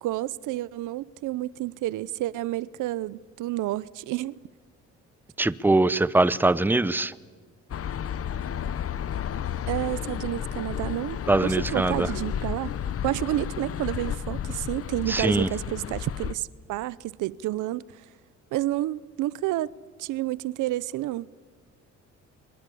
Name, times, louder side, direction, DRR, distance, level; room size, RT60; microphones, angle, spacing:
voice 1, 0.0-4.4 9.7-12.7 13.0-17.8 18.5-19.7 20.0-21.3, right 15 dB, 85° right, 0.7 m, -30 dB
voice 2, 5.4-7.1 11.3-12.1 15.1-15.5, right 2 dB, 5° right, 0.8 m, -22 dB
sound 1, 7.7-16.3, left 9 dB, 50° left, 1.0 m, -32 dB
26.0 x 23.5 x 8.5 m
cardioid pair, 90°, 30 cm